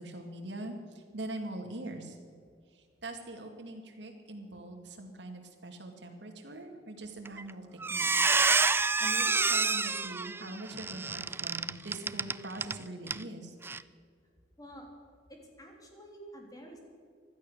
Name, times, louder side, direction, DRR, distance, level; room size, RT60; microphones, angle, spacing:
voice 1, 0.0-2.2 2.7-8.1 9.0-13.5, right 2 dB, 75° right, 3 dB, 2.4 m, -43 dB
Squeak, 7.3-7.5 7.8-12.8 13.1-13.2 13.6-13.8, right 4 dB, 15° right, 0.3 m, -28 dB
voice 2, 15.3-16.8, right 1 dB, 20° left, 1 dB, 3.1 m, -49 dB
15.5 x 12.0 x 6.5 m, 2.1 s
head